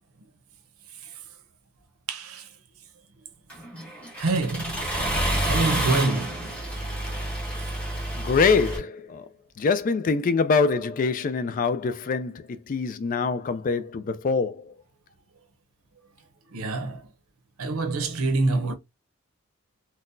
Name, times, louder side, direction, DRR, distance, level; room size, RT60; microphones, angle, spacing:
voice 1, 2.1-2.5 4.2-4.8 5.4-6.6 16.5-17.1 17.6-18.7, right 3 dB, 85° right, 0.8 m, -26 dB
Accelerating revving vroom, 3.5-8.8, right 1 dB, 5° left, 1.1 m, -29 dB
voice 2, 8.2-9.3 9.6-14.7, left 4 dB, 40° left, 0.3 m, -24 dB
3.8 x 2.2 x 2.5 m
head